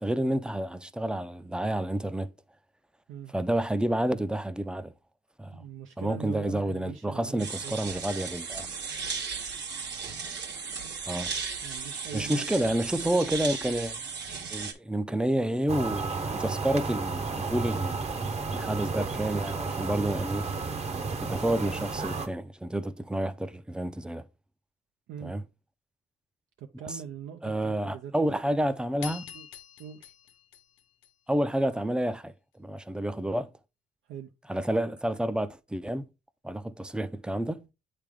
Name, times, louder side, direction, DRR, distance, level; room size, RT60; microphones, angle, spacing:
voice 1, 0.0-2.3 3.3-4.9 5.4-5.6 6.0-8.7 11.1-11.3 12.1-14.0 14.5-18.2 18.5-20.5 21.2-24.2 25.2-25.4 26.9-27.0 27.4-29.3 31.3-32.3 32.6-33.5 34.5-36.0 36.4-37.7, right 1 dB, 5° right, 0.4 m, -29 dB
voice 2, 5.5-7.8 11.6-12.5 12.8-12.9 25.1-25.4 26.6-28.6 29.3-29.5 29.8-30.1 34.1-34.3, right 8 dB, 80° right, 0.6 m, -42 dB
sound 1, 7.4-14.7, right 5 dB, 60° right, 1.4 m, -36 dB
sound 2, 15.7-22.3, right 4 dB, 35° right, 0.8 m, -32 dB
sound 3, 29.0-31.6, left 9 dB, 75° left, 0.9 m, -45 dB
8.2 x 3.4 x 3.5 m
cardioid pair, 90°, 20 cm